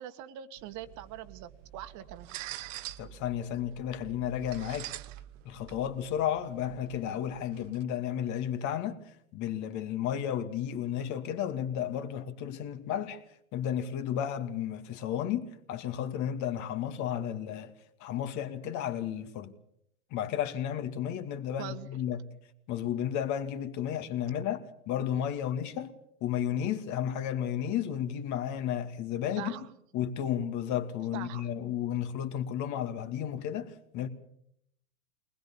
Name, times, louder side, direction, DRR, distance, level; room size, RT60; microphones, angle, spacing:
voice 1, 0.0-2.3 21.6-21.9 29.4-29.7 31.1-31.5, right 11 dB, 40° right, 1.7 m, -42 dB
sound 1, 0.6-7.8, right 14 dB, 60° right, 1.1 m, -46 dB
voice 2, 3.0-4.9 5.4-9.0 9.3-13.2 13.5-17.7 18.0-19.5 20.1-22.2 22.7-25.9 26.2-29.5 29.9-34.1, left 10 dB, 40° left, 2.4 m, -33 dB
23.0 x 20.0 x 7.1 m
hypercardioid pair, 115°, 43 cm